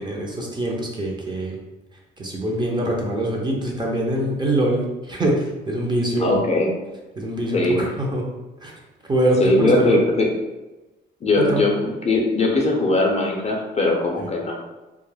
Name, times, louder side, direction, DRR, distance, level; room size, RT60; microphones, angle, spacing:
voice 1, 0.0-1.6 2.2-6.3 7.2-8.2 8.6-8.7 9.1-10.0 11.4-11.7 14.2-14.3, right 1 dB, 25° right, -1 dB, 0.6 m, -23 dB
voice 2, 6.2-6.7 7.5-7.9 9.4-10.3 11.2-14.5, left 2 dB, 35° left, 0 dB, 0.5 m, -20 dB
2.3 x 2.0 x 3.2 m, 1.1 s
cardioid pair, 90°, 20 cm